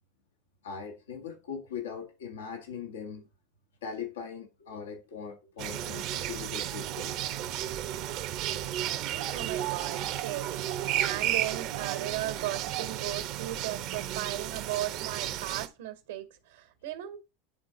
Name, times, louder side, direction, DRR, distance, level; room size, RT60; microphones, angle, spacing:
voice 1, 0.6-3.3 3.8-7.3 7.7-7.9 8.5-8.9 9.2-9.3, left 6 dB, 90° left, 1.8 m, -41 dB
sound 1, 5.6-15.7, right 12 dB, 55° right, 1.1 m, -33 dB
voice 2, 9.3-17.2, right 13 dB, 80° right, 1.9 m, -37 dB
10.5 x 3.8 x 3.9 m
hypercardioid pair, 100°, 0 cm